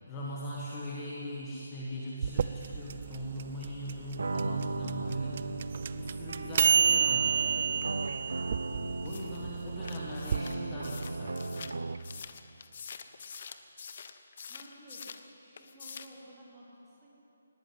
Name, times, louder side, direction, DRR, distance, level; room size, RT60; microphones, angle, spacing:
voice 1, 0.1-5.6 5.9-8.0 8.7-11.7, equal, 15° left, -5 dB, 1.5 m, -40 dB
sound 1, 2.2-10.4, right 7 dB, 30° right, 0.4 m, -30 dB
sound 2, 4.2-12.2, right 3 dB, 90° right, 0.7 m, -37 dB
sound 3, 9.0-15.3 15.6-16.2, left 6 dB, 35° left, 0.9 m, -46 dB
voice 2, 14.4-15.0 15.4-17.1, right 1 dB, 10° right, -7 dB, 3.4 m, -53 dB
19.5 x 16.5 x 9.4 m, 2.8 s
hypercardioid pair, 180°, 0 cm